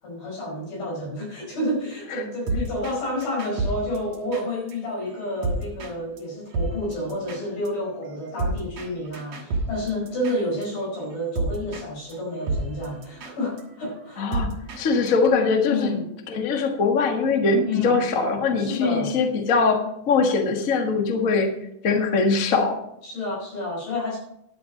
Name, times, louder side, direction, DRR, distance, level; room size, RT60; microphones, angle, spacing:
voice 1, 0.0-14.3 15.7-16.0 17.7-18.0 18.6-19.2 23.0-24.2, left 1 dB, 85° left, -2 dB, 6.7 m, -30 dB
sound 1, 2.5-2.9 3.2-5.9 6.2-6.3 6.5-10.6 11.0-11.8 12.1-12.2 12.5-14.8 15.1-15.3, right 2 dB, 50° right, 2.9 m, -30 dB
voice 2, 14.2-14.5 14.8-16.0 16.3-21.5 21.8-22.8, left 4 dB, 65° left, 3 dB, 0.8 m, -22 dB
11.5 x 8.1 x 5.2 m, 0.77 s
omnidirectional pair, 4.1 m